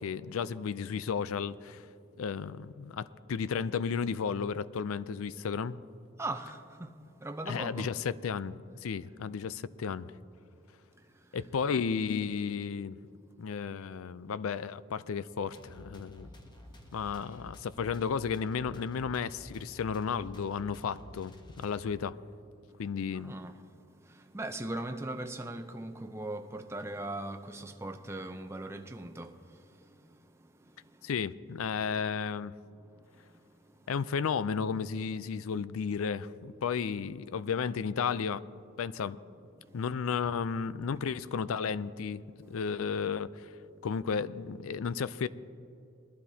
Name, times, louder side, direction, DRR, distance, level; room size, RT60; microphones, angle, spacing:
voice 1, 0.0-1.8 2.2-5.8 7.5-10.1 11.3-13.0 13.4-16.3 16.9-22.2 22.8-23.3 31.0-32.5 33.9-38.4 38.8-39.2 39.7-42.2 42.5-43.5 43.8-45.3, left 6 dB, 85° left, 0.4 m, -33 dB
voice 2, 6.2-6.9 7.2-7.9 23.1-23.6 24.1-29.3, right 2 dB, 10° right, 0.6 m, -39 dB
sound 1, 15.5-22.2, left 1 dB, 20° left, 1.0 m, -51 dB
20.5 x 12.0 x 2.8 m
head